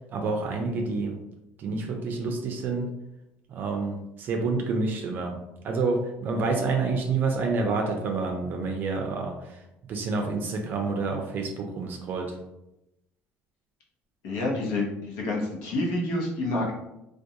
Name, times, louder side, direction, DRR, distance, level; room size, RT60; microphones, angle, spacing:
voice 1, 0.1-1.2 1.6-2.9 3.5-5.4 5.6-9.6 9.9-12.3, right 4 dB, 45° right, 3 dB, 0.4 m, -28 dB
voice 2, 14.2-16.7, left 2 dB, 90° left, -2 dB, 0.7 m, -28 dB
2.4 x 2.2 x 2.7 m, 0.89 s
cardioid pair, 130°, 4 cm